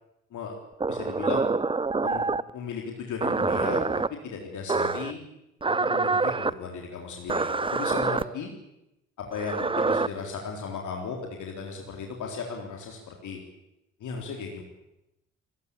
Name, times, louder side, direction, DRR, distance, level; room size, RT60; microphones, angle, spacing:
sound 1, 0.8-2.5 3.2-4.1 4.7-5.1 5.6-6.5 7.3-8.2 9.3-10.1, right 4 dB, 15° right, 0.8 m, -26 dB
voice 1, 0.9-1.5 2.0-2.2 2.5-5.2 5.7-8.5 9.2-13.4 14.0-14.6, left 5 dB, 55° left, 1 dB, 3.9 m, -36 dB
23.0 x 20.5 x 8.7 m, 0.91 s
figure-of-eight pair, 45°, 35 cm